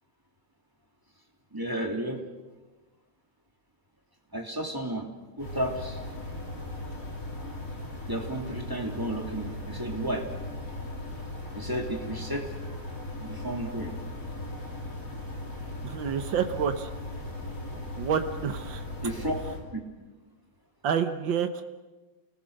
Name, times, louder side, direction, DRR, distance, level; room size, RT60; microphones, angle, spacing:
voice 1, 1.5-2.2 4.3-5.1 5.4-6.0 8.1-10.2 11.5-12.8 13.2-13.9 19.0-19.3 19.7-19.8, right 1 dB, 10° right, 1 dB, 2.9 m, -32 dB
sound 1, 5.4-19.6, left 1 dB, 45° left, 3.9 m, -38 dB
voice 2, 15.8-16.9 18.0-18.8 20.8-21.6, right 7 dB, 90° right, 8 dB, 1.8 m, -28 dB
29.0 x 20.0 x 6.5 m, 1.2 s
omnidirectional pair, 2.0 m